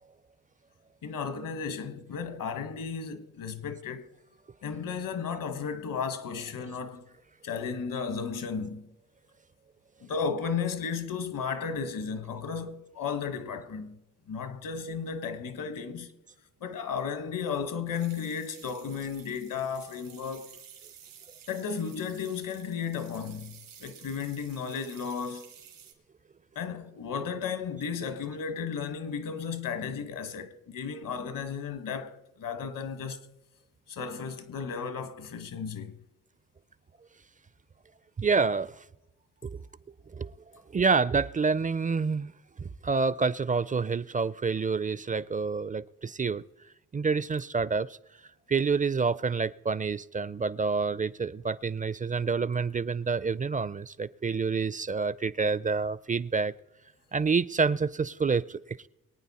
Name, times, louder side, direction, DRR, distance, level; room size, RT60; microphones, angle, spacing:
voice 1, 1.0-4.1 4.6-7.1 7.4-8.9 10.1-14.0 14.3-16.1 16.6-20.5 21.5-25.5 26.5-33.2 33.9-35.9, left 6 dB, 75° left, 1.4 m, -34 dB
sound 1, 17.9-25.9, right 9 dB, 90° right, 2.8 m, -52 dB
voice 2, 38.2-38.8 39.4-39.6 40.1-40.3 40.7-42.3 42.6-46.4 46.9-47.9 48.5-56.5 57.1-58.9, right 4 dB, 25° right, 0.4 m, -28 dB
23.0 x 9.1 x 4.2 m
cardioid pair, 70°, 33 cm